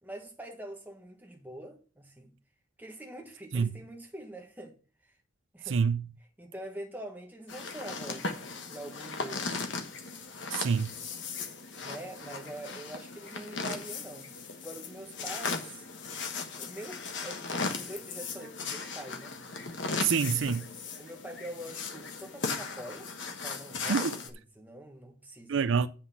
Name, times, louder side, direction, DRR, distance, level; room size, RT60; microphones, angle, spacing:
voice 1, 0.0-2.3 2.8-4.7 5.0-5.1 5.5-5.8 6.4-9.5 11.8-14.3 14.6-15.9 16.6-19.3 21.0-23.1 23.4-25.6, right 1 dB, 10° right, 1.3 m, -44 dB
voice 2, 5.7-6.1 10.5-10.9 20.0-20.7 23.8-24.2 25.5-25.9, right 6 dB, 65° right, 0.4 m, -27 dB
sound 1, 7.5-24.3, left 4 dB, 60° left, 1.3 m, -37 dB
7.7 x 6.0 x 5.9 m
head